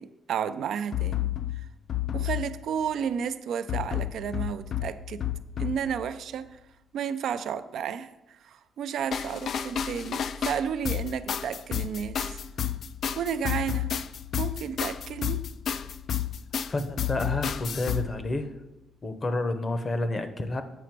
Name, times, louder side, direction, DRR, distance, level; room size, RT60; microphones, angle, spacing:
voice 1, 0.0-1.7 2.1-5.3 5.6-6.6 6.9-12.4 13.2-13.9 14.4-15.4, right 8 dB, 70° right, 11 dB, 0.4 m, -32 dB
sound 1, 0.9-2.9 3.7-6.1 9.1-18.6, left 10 dB, 60° left, 0.3 m, -31 dB
voice 2, 16.7-18.5 19.0-20.6, left 2 dB, 35° left, 9 dB, 0.8 m, -29 dB
7.7 x 5.0 x 4.6 m, 0.96 s
cardioid pair, 90°, 0 cm